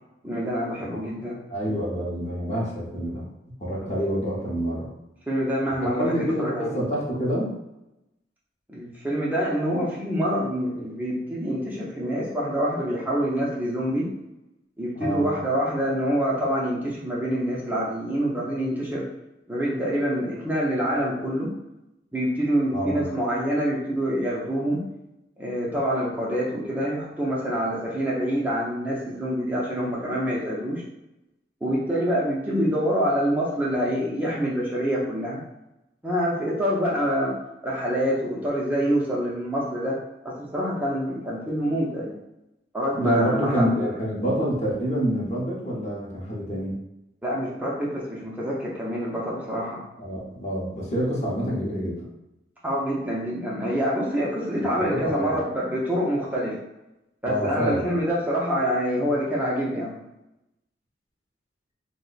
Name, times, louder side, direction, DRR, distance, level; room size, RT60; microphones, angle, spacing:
voice 1, 0.2-1.4 3.8-4.0 5.3-6.8 8.7-14.1 14.8-19.1 19.5-21.5 22.1-24.8 25.4-30.8 31.6-35.4 36.0-37.4 37.6-40.0 40.2-42.1 42.7-43.9 47.2-49.8 52.6-56.6 57.2-59.9, equal, 10° right, -5 dB, 0.6 m, -26 dB
voice 2, 0.8-1.1 1.5-3.2 3.6-4.9 6.0-7.5 14.9-15.3 22.7-23.0 42.9-46.8 50.0-52.1 54.8-55.3 57.2-57.9, equal, 40° left, -5 dB, 0.7 m, -27 dB
2.6 x 2.1 x 3.9 m, 0.92 s
head